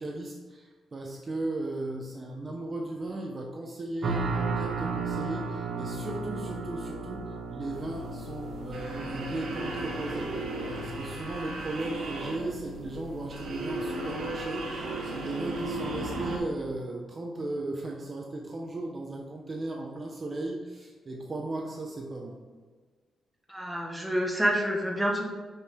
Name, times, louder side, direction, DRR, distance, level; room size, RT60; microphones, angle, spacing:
voice 1, 0.0-22.4, right 2 dB, 30° right, 0 dB, 0.8 m, -36 dB
sound 1, 4.0-10.9, right 4 dB, 50° right, 1.6 m, -34 dB
sound 2, 7.7-16.4, right 2 dB, 90° right, 1.7 m, -36 dB
voice 2, 23.5-25.2, equal, 5° right, -1 dB, 1.2 m, -28 dB
6.5 x 6.4 x 4.9 m, 1.4 s
wide cardioid pair, 165°, 0 cm